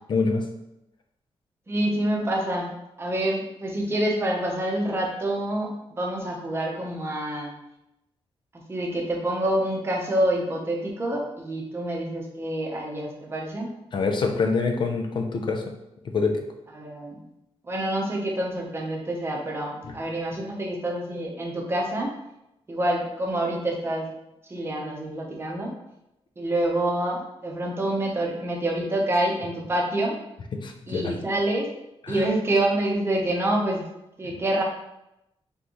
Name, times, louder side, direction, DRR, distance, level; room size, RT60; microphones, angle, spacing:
voice 1, 0.1-0.4 13.9-15.6 16.1-16.4 19.8-20.0 30.5-31.1 32.1-32.3 34.2-34.3, left 4 dB, 50° left, 5 dB, 0.5 m, -25 dB
voice 2, 1.7-7.5 8.7-13.7 16.8-17.2 17.7-22.1 22.7-24.1 24.5-25.7 26.4-30.2 30.9-31.7 32.1-33.8 34.2-34.6, right 1 dB, 25° right, -1 dB, 0.8 m, -27 dB
3.9 x 3.5 x 3.0 m, 0.87 s
wide cardioid pair, 150°, 10 cm